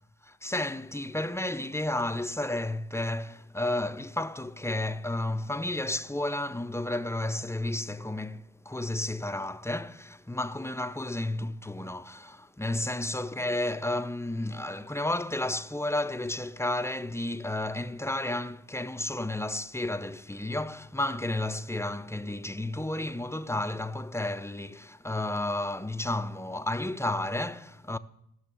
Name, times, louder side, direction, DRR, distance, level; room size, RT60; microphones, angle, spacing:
voice 1, 0.2-28.0, left 1 dB, 5° left, 0.6 m, -32 dB
16.0 x 6.4 x 6.9 m
supercardioid pair, 55°, 40 cm